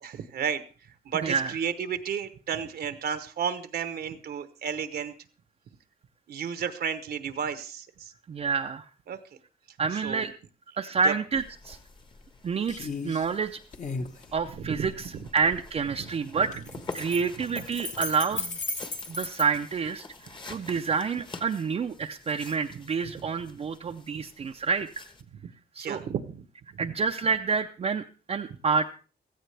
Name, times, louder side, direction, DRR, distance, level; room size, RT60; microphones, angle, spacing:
voice 1, 0.0-0.6 1.1-5.1 6.3-8.1 9.1-9.2 10.0-10.2 11.0-11.1 14.6-14.9 15.1-15.2 16.0-16.1 23.2-23.3 25.8-26.5 26.7-26.9, right 7 dB, 70° right, 11 dB, 0.9 m, -32 dB
voice 2, 8.3-8.9 9.8-10.3 10.8-11.8 12.4-13.6 14.3-16.5 16.9-18.6 19.1-20.0 20.3-25.0 25.8-26.0 26.8-29.0, right 5 dB, 40° right, 4 dB, 0.5 m, -28 dB
sound 1, 11.4-11.5 11.9-12.4 12.7-13.3 13.7-15.7 16.4-19.5, left 3 dB, 45° left, 1.3 m, -36 dB
sound 2, 11.4-25.2, left 3 dB, 30° left, 1.3 m, -48 dB
16.0 x 14.5 x 3.3 m, 0.36 s
wide cardioid pair, 155°, 17 cm